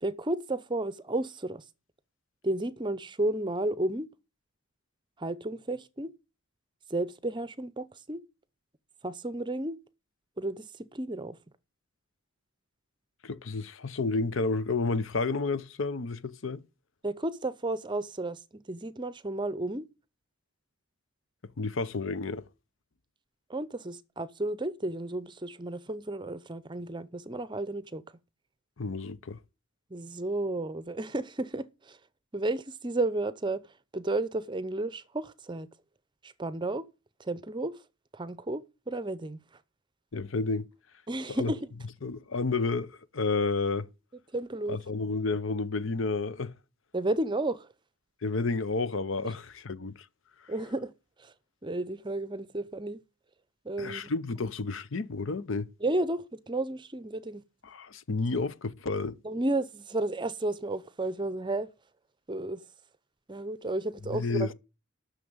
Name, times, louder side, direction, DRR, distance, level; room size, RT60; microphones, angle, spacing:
voice 1, 0.0-1.6 2.4-4.1 5.2-6.1 6.9-8.2 9.0-9.8 10.4-11.4 17.0-19.9 23.5-28.0 29.9-32.0 32.3-33.7 33.9-35.7 36.2-36.8 37.2-37.8 38.1-39.4 41.1-41.7 44.3-44.8 46.9-47.7 49.2-49.3 50.5-50.9 51.2-51.3 51.6-53.0 53.6-54.1 55.8-57.4 59.2-61.7 62.3-62.6 63.3-64.5, right 2 dB, 20° right, 0.6 m, -32 dB
voice 2, 13.2-16.6 21.6-22.4 28.8-29.4 40.1-40.7 41.3-41.5 42.0-43.9 44.7-46.5 48.2-50.1 53.8-55.7 57.6-59.2 64.1-64.5, left 3 dB, 65° left, 0.7 m, -31 dB
9.8 x 6.4 x 8.8 m
head